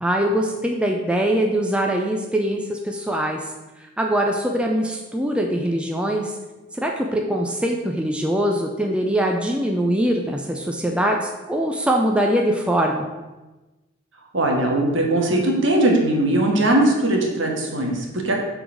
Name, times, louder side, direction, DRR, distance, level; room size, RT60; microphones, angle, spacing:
voice 1, 0.0-3.5 3.8-6.4 6.7-13.0, right 1 dB, 5° right, 1 dB, 0.5 m, -22 dB
voice 2, 14.3-18.4, right 1 dB, 60° right, 0 dB, 1.6 m, -20 dB
7.9 x 4.0 x 6.2 m, 1.1 s
head